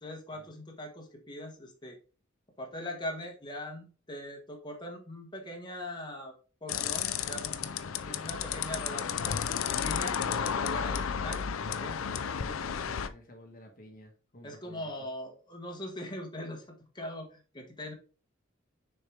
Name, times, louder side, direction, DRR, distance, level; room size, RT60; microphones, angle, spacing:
voice 1, 0.0-2.0 2.6-6.3 6.6-9.4 9.7-11.4 11.7-12.0 14.4-16.6 16.9-17.9, left 1 dB, 20° left, 1 dB, 1.3 m, -41 dB
sound 1, 6.7-13.1, left 7 dB, 85° left, 0.5 m, -32 dB
voice 2, 8.0-8.3 12.0-15.1, equal, 45° left, 3 dB, 1.2 m, -52 dB
6.4 x 4.6 x 3.4 m, 0.36 s
head